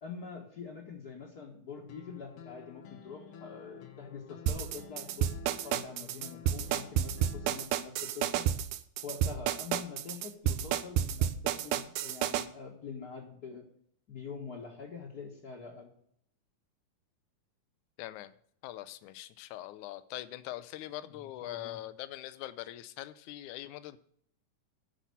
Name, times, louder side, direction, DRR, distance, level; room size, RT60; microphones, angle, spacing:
voice 1, 0.0-5.4 5.6-8.4 9.0-13.6 14.1-15.9 21.1-21.8, left 5 dB, 40° left, -2 dB, 1.6 m, -45 dB
sound 1, 1.9-7.6, left 9 dB, 60° left, 1.5 m, -51 dB
sound 2, 4.5-12.5, right 11 dB, 80° right, 2.1 m, -30 dB
voice 2, 18.0-18.3 18.6-24.0, left 15 dB, 75° left, 13 dB, 2.0 m, -42 dB
10.0 x 5.9 x 8.3 m, 0.66 s
omnidirectional pair, 3.7 m